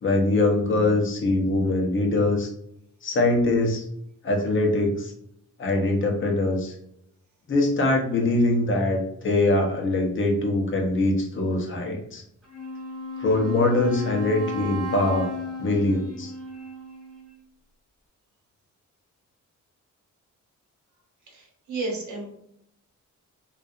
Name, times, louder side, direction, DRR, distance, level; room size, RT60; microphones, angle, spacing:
voice 1, 0.0-2.5 3.0-3.8 4.2-5.1 5.6-6.7 7.5-12.2 13.2-15.3 15.6-16.3, left 2 dB, 40° left, 1 dB, 0.6 m, -23 dB
Wind instrument woodwind instrument, 12.4-17.4, left 3 dB, ahead, 0.7 m, -34 dB
voice 2, 21.3-22.3, right 3 dB, 65° right, -1 dB, 0.9 m, -32 dB
2.6 x 2.3 x 2.3 m, 0.73 s
wide cardioid pair, 165°, 32 cm